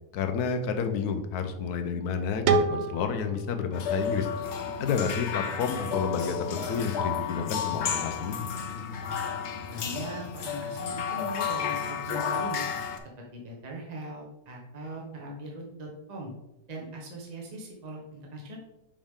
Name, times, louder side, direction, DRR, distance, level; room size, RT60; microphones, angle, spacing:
voice 1, 0.1-4.3 4.8-8.4, left 6 dB, 75° left, 6 dB, 1.3 m, -30 dB
sound 1, 2.5-5.3, right 4 dB, 65° right, 0.7 m, -30 dB
sound 2, 3.7-13.0, left 6 dB, 55° left, 0.8 m, -32 dB
voice 2, 9.7-12.6 13.3-16.3 16.7-18.6, right 1 dB, 25° right, -1 dB, 1.2 m, -40 dB
7.1 x 5.0 x 3.7 m, 0.91 s
omnidirectional pair, 1.7 m